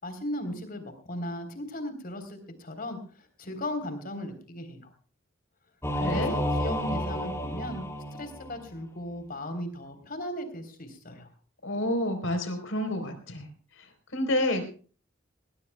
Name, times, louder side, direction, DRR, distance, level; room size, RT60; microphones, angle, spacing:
voice 1, 0.0-4.9 6.0-7.8 8.1-11.3, left 1 dB, 45° left, 8 dB, 3.7 m, -37 dB
Singing / Musical instrument, 5.8-8.7, equal, 15° left, 3.7 m, -31 dB
voice 2, 5.9-6.3 11.6-13.5 14.1-14.7, left 1 dB, 75° left, 6 dB, 4.0 m, -29 dB
20.5 x 19.5 x 2.3 m, 0.40 s
head